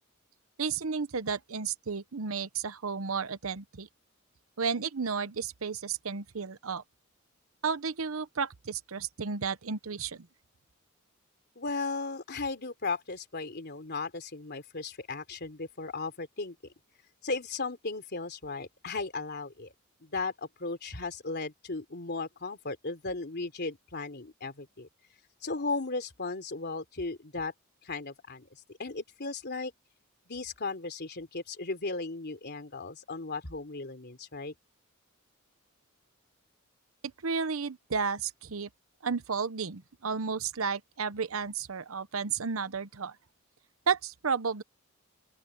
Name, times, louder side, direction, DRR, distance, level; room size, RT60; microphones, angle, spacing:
voice 1, 0.6-3.9 4.6-6.8 7.6-10.3 37.2-38.7 39.0-43.2 43.9-44.6, right 5 dB, 80° right, 0.9 m, -32 dB
voice 2, 11.5-16.5 17.2-19.7 20.0-24.9 25.4-27.5 27.8-29.7 30.3-34.5, left 3 dB, 55° left, 3.2 m, -36 dB
open air
head